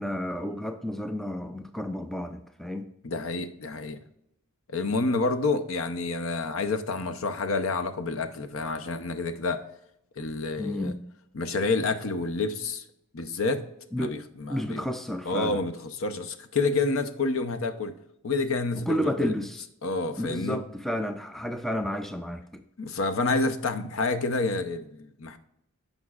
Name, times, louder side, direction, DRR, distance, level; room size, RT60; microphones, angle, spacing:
voice 1, 0.0-2.9 10.6-11.0 13.9-14.2 14.5-15.6 18.9-19.6 20.2-22.6, equal, ahead, 7 dB, 0.3 m, -31 dB
voice 2, 3.0-4.0 4.7-9.7 10.2-10.9 11.3-12.8 13.1-13.7 14.0-14.8 15.3-17.9 18.2-19.3 19.8-20.6 22.8-25.4, left 3 dB, 65° left, 9 dB, 0.7 m, -28 dB
16.0 x 5.3 x 2.4 m, 0.79 s
head